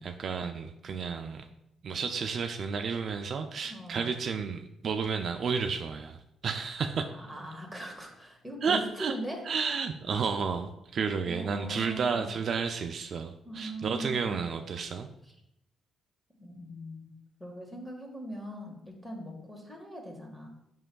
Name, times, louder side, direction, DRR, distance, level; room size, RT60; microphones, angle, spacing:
voice 1, 0.0-1.5 1.8-7.1 8.6-9.1 9.5-15.1, right 5 dB, 55° right, 6 dB, 0.4 m, -32 dB
voice 2, 3.7-4.1 7.1-9.4 11.2-12.3 13.4-14.4 15.2-15.3 16.4-17.1 17.4-20.5, equal, 5° left, 0 dB, 1.6 m, -40 dB
7.5 x 5.4 x 2.3 m, 0.83 s
cardioid pair, 90°, 0 cm